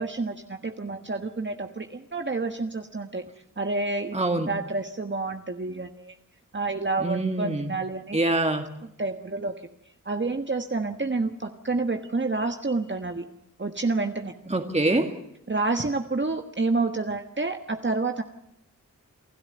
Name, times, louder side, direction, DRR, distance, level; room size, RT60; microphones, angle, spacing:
voice 1, 0.0-3.3 3.6-4.2 4.5-6.1 6.5-8.2 9.0-9.5 10.0-13.3 13.6-14.3 15.5-18.2, right 3 dB, 35° right, 6 dB, 1.4 m, -29 dB
voice 2, 4.1-4.5 7.0-7.7 8.1-8.7 14.5-15.1, right 2 dB, 20° right, 5 dB, 2.1 m, -25 dB
27.5 x 13.0 x 8.9 m, 0.79 s
cardioid pair, 50°, 32 cm